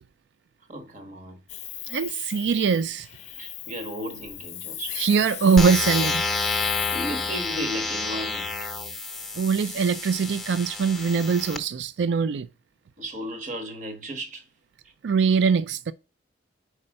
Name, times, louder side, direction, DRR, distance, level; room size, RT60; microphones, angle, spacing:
voice 1, 0.7-1.4 3.4-5.0 6.9-8.7 13.0-14.4, equal, 40° right, 1.2 m, -35 dB
Hiss, 1.5-7.8, left 12 dB, 40° left, 0.5 m, -35 dB
voice 2, 1.9-3.1 4.9-6.5 9.4-12.5 15.0-15.9, right 5 dB, 75° right, 0.4 m, -22 dB
sound 1, 5.6-11.6, left 3 dB, ahead, 0.8 m, -29 dB
5.4 x 4.8 x 5.3 m
head